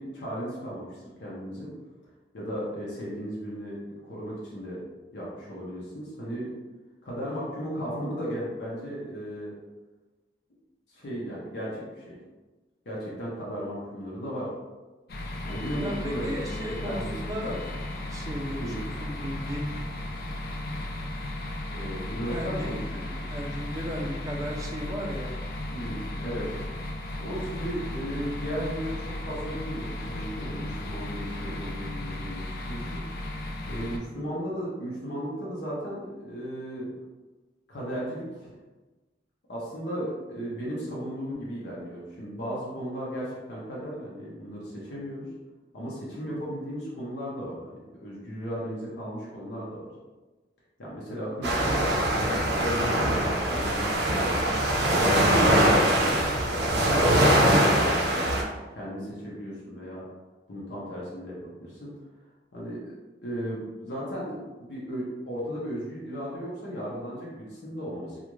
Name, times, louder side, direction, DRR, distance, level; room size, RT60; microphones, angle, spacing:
voice 1, 0.0-1.7 2.3-4.8 5.1-6.5 7.0-9.5 10.9-12.2 12.9-14.5 15.4-17.1 17.4-17.5 18.6-18.8 21.7-23.1 25.7-26.5 27.2-33.0 33.7-36.9 37.7-38.5 39.5-45.3 45.7-47.6 48.0-49.8 50.8-51.8 52.2-56.2 56.7-58.4 58.7-60.0 60.5-61.9 62.5-62.9 63.2-68.2, equal, 80° left, -6 dB, 0.7 m, -35 dB
sound 1, 15.1-34.0, left 1 dB, 55° left, 0.4 m, -35 dB
voice 2, 15.8-17.6 18.1-18.7 19.0-19.7 22.3-25.3 26.4-26.6, equal, 20° right, -1 dB, 0.4 m, -35 dB
sound 2, 51.4-58.4, right 1 dB, 70° right, 0.5 m, -22 dB
2.4 x 2.4 x 3.0 m, 1.2 s
head